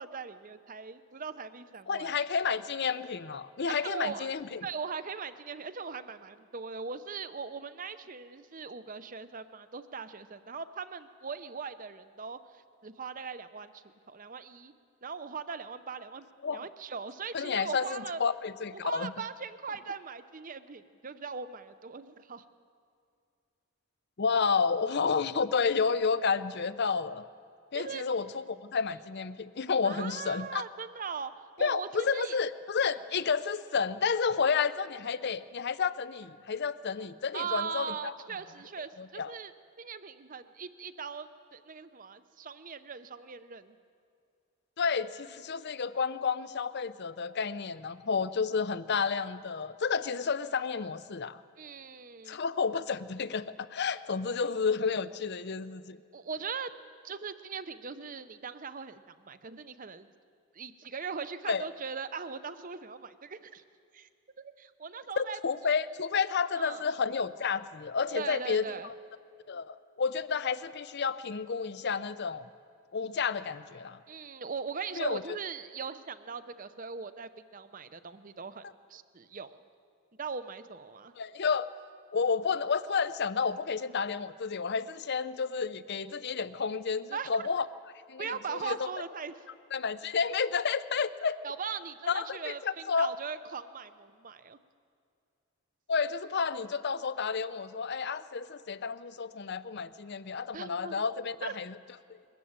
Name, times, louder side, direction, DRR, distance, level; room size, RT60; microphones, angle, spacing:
voice 1, 0.0-2.1 3.7-4.3 4.6-14.7 15.0-16.3 16.5-18.2 18.7-22.4 27.7-28.0 29.8-31.3 31.6-32.4 32.8-33.0 37.3-39.5 39.8-43.8 51.6-52.4 56.1-56.7 57.0-60.1 60.5-63.6 63.9-64.1 64.4-65.7 66.5-66.9 68.1-68.9 74.1-78.6 78.9-79.6 80.2-81.1 87.1-87.4 88.2-89.3 91.4-94.6 100.5-101.0 101.4-101.5, right 5 dB, 40° right, 12 dB, 0.7 m, -40 dB
voice 2, 1.9-4.6 16.4-16.6 17.3-19.1 24.2-27.2 27.7-30.6 31.6-38.1 39.0-39.3 44.8-51.4 52.3-56.0 61.5-61.6 65.2-68.9 69.5-72.5 72.9-74.0 74.9-75.4 81.2-81.7 82.1-87.6 88.1-88.9 89.7-91.4 92.1-93.1 95.9-101.7, left 5 dB, 50° left, 15 dB, 0.6 m, -31 dB
21.5 x 14.0 x 8.8 m, 2.4 s
head